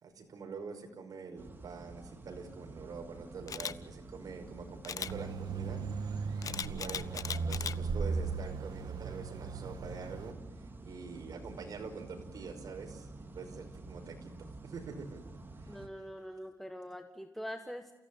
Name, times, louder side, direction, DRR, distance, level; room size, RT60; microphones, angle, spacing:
voice 1, 0.0-5.8 6.4-14.3 14.6-15.2 15.6-16.1, right 5 dB, 65° right, 4 dB, 5.4 m, -45 dB
sound 1, 1.4-15.9, right 2 dB, 30° right, 3.3 m, -50 dB
Camera, 3.5-3.7 4.8-5.1 6.4-7.7 8.2-8.5, left 7 dB, 60° left, 0.8 m, -38 dB
sound 2, 5.1-10.3, right 4 dB, 85° right, 1.9 m, -37 dB
voice 2, 15.7-17.9, equal, 5° left, 6 dB, 1.5 m, -43 dB
29.0 x 16.5 x 9.0 m, 0.98 s
wide cardioid pair, 115°, 7 cm